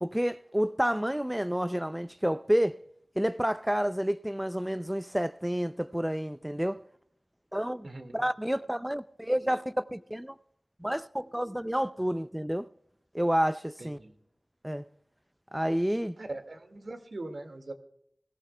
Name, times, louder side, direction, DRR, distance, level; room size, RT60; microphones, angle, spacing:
voice 1, 0.0-2.8 3.2-6.8 7.5-7.9 8.1-10.4 10.8-12.7 13.1-14.0 14.6-14.9 15.5-16.2, equal, 10° right, 0.4 m, -29 dB
voice 2, 7.8-8.2 13.8-14.2 16.2-17.7, right 2 dB, 65° right, 1.8 m, -41 dB
21.5 x 14.0 x 2.2 m
cardioid pair, 45°, 0 cm